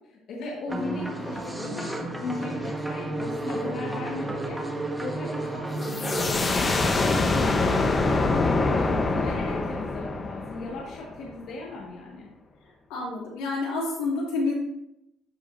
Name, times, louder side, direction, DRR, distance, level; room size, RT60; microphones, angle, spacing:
voice 1, 0.1-7.9 8.7-12.3, left 3 dB, 60° left, -3 dB, 1.6 m, -38 dB
sound 1, 0.7-8.2, right 2 dB, 5° right, 1.3 m, -32 dB
sound 2, 5.8-11.3, left 3 dB, 30° left, 0.9 m, -25 dB
voice 2, 12.9-14.5, left 3 dB, 90° left, -4 dB, 2.8 m, -29 dB
12.5 x 4.8 x 2.6 m, 0.84 s
cardioid pair, 95°, 0 cm